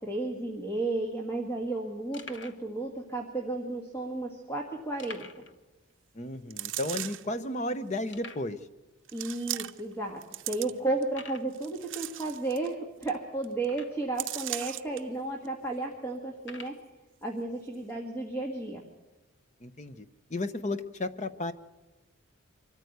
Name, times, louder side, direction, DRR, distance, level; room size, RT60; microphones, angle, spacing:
voice 1, 0.0-5.4 9.1-16.7 17.2-18.9, right 2 dB, 10° left, 1 dB, 1.7 m, -33 dB
sound 1, 1.1-1.2 1.6-1.7 2.1-2.7 3.4-3.5 5.0-5.6 5.9-6.0 6.4-6.5 7.1-7.2 8.1-8.5 9.3-9.4 10.0-10.1 11.1-11.5 13.6-14.2 15.0-15.1 16.4-16.8, left 4 dB, 60° left, 1.2 m, -46 dB
voice 2, 6.1-8.6 19.6-21.5, left 1 dB, 35° left, 11 dB, 0.8 m, -33 dB
sound 2, 6.5-7.3 8.1-8.2 9.1-9.9 10.2-11.0 11.5-12.7 13.0-13.1 13.4-13.6 14.2-15.0 15.4-15.5, right 14 dB, 65° right, 0.7 m, -37 dB
24.5 x 14.0 x 8.0 m, 1.1 s
head